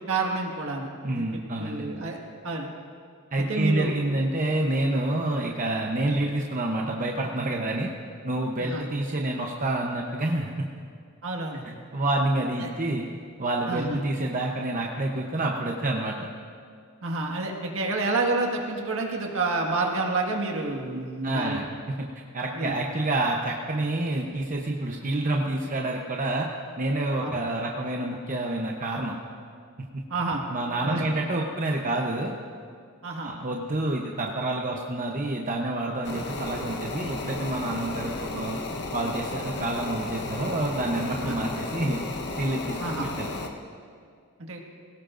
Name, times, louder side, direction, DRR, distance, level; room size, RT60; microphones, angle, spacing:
voice 1, 0.1-2.2 2.4-2.7 3.4-3.9 8.6-8.8 11.2-11.6 12.6-12.7 13.7-14.0 17.0-21.6 22.5-22.7 27.2-27.4 30.1-30.4 30.8-31.0 33.0-33.3 41.2-41.4 42.8-43.1 44.5-44.6, right 3 dB, 65° right, 1 dB, 1.8 m, -29 dB
voice 2, 1.0-1.9 3.3-7.9 8.2-10.7 11.9-13.1 13.4-16.1 21.2-21.7 22.3-26.5 26.8-29.1 29.9-30.0 30.5-32.3 33.2-38.6 38.9-42.0 42.4-42.8 43.2-43.3, right 2 dB, 35° right, 0 dB, 0.9 m, -28 dB
sound 1, 36.0-43.5, left 2 dB, 50° left, 1.1 m, -34 dB
20.5 x 17.5 x 2.6 m, 2.2 s
head